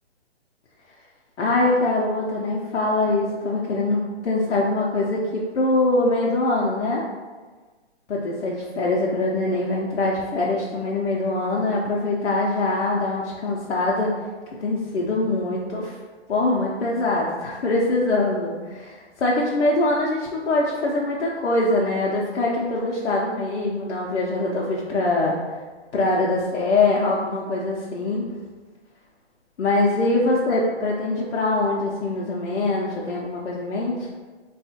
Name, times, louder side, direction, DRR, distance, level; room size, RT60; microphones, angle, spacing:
voice 1, 1.4-7.0 8.1-14.1 14.6-16.0 16.3-25.4 25.9-28.3 29.6-34.1, left 2 dB, 90° left, -4 dB, 0.6 m, -23 dB
3.4 x 2.4 x 2.7 m, 1.4 s
hypercardioid pair, 155°, 34 cm